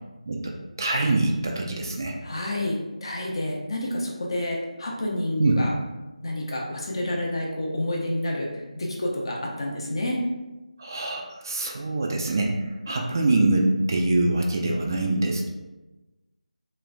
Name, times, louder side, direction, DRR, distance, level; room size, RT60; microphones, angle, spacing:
voice 1, 0.8-2.2 5.4-5.6 10.8-15.5, right 2 dB, 30° right, 0 dB, 0.3 m, -24 dB
voice 2, 2.2-5.7 6.2-8.5 8.7-10.2, left 1 dB, 40° left, -1 dB, 0.6 m, -29 dB
3.1 x 3.1 x 2.5 m, 1.1 s
figure-of-eight pair, 160°, 4 cm